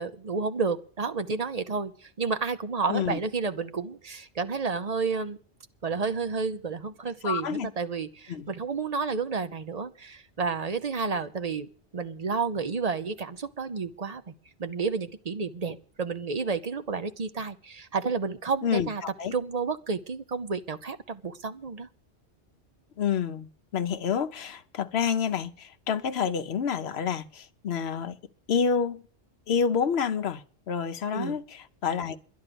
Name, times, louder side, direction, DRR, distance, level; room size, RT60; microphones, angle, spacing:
voice 1, 0.0-5.4 5.8-11.7 11.9-14.3 14.6-19.0 19.3-21.9 31.1-31.4, right 4 dB, 40° right, 0.7 m, -31 dB
voice 2, 2.9-3.2 7.2-7.7 8.3-8.5 18.6-18.9 19.2-19.3 23.0-28.2 28.5-29.0 29.5-32.2, left 7 dB, 70° left, 1.0 m, -28 dB
11.0 x 10.5 x 6.9 m
omnidirectional pair, 1.1 m